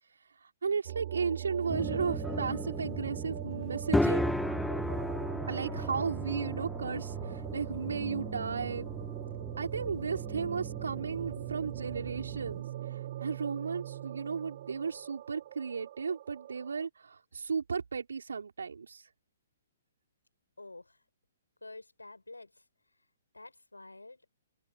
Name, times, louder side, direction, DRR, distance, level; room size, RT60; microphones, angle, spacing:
voice 1, 0.6-4.3 5.5-8.9 9.6-12.6 12.9-19.0, right 5 dB, 70° right, 4.4 m, -35 dB
sound 1, 0.9-16.9, right 12 dB, 45° right, 0.7 m, -40 dB
sound 2, 1.7-12.6, left 1 dB, ahead, 1.5 m, -36 dB
voice 2, 20.6-21.0 21.6-22.6 23.3-24.2, left 2 dB, 85° left, 5.3 m, -49 dB
open air
figure-of-eight pair, 125°, 0 cm